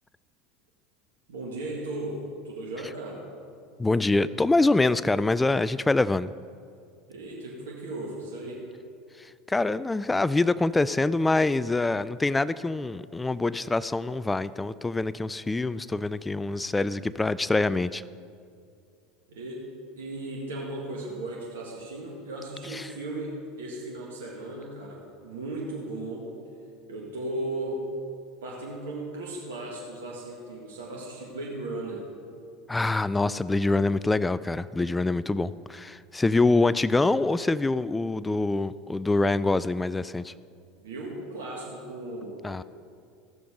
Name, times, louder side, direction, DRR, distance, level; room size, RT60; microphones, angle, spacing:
voice 1, 1.3-3.2 7.1-8.6 19.3-19.6 20.0-26.3 26.9-27.9 28.4-32.0 40.8-42.6, right 2 dB, 80° right, -3 dB, 1.9 m, -36 dB
voice 2, 3.8-6.3 9.2-18.0 22.7-22.9 32.7-40.3 42.4-42.6, left 2 dB, 15° left, 17 dB, 0.3 m, -25 dB
16.0 x 6.9 x 5.2 m, 2.4 s
hypercardioid pair, 80°, 0 cm